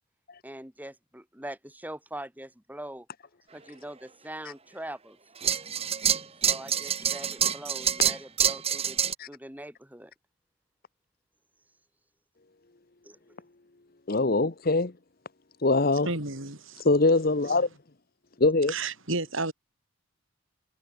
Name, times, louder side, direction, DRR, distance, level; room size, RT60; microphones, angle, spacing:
voice 1, 0.4-3.1 3.5-5.2 6.4-9.0 9.3-10.1 13.0-13.2, right 1 dB, 10° right, 2.9 m, -42 dB
sound 1, 5.4-9.1, right 8 dB, 25° right, 1.6 m, -26 dB
voice 2, 14.1-14.9 15.6-16.1 16.8-17.7 18.4-18.7, left 3 dB, 45° left, 0.9 m, -22 dB
voice 3, 16.1-16.8 18.7-19.5, right 3 dB, 60° right, 4.5 m, -31 dB
head